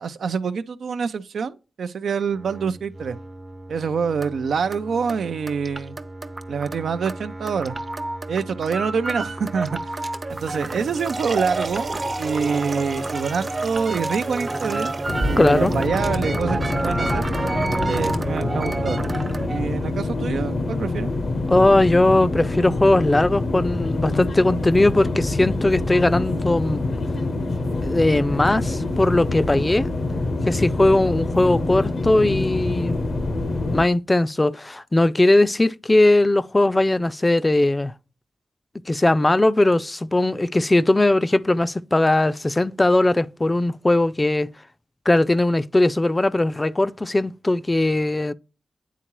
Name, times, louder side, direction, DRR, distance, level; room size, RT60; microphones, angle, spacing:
voice 1, 0.0-3.2 3.7-6.0 6.5-7.8 8.3-9.9 10.3-14.9 15.3-17.3 17.9-19.0 19.5-21.1, right 6 dB, 85° right, 0.5 m, -26 dB
sound 1, 2.3-19.7, right 2 dB, 40° right, 0.7 m, -30 dB
sound 2, 10.3-15.9, right 3 dB, 60° right, 1.1 m, -34 dB
sound 3, 15.1-33.8, left 2 dB, 65° left, 0.8 m, -26 dB
voice 2, 15.3-15.7 21.5-26.8 27.8-29.9 30.5-33.0 33.7-37.9 38.9-44.5 45.1-48.3, left 2 dB, 25° left, 0.4 m, -19 dB
9.2 x 3.6 x 3.0 m
cardioid pair, 45°, 0 cm